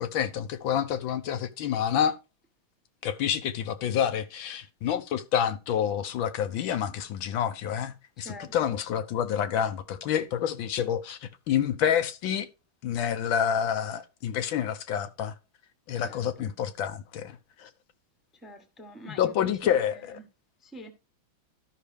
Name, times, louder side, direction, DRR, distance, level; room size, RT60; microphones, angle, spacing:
voice 1, 0.0-2.2 3.0-12.5 12.8-15.3 15.9-17.7 19.0-20.2, left 9 dB, 75° left, 1.5 m, -28 dB
voice 2, 8.2-8.7 16.0-16.5 18.3-20.3 20.6-20.9, left 1 dB, ahead, 0.9 m, -45 dB
13.0 x 5.7 x 3.3 m
omnidirectional pair, 2.3 m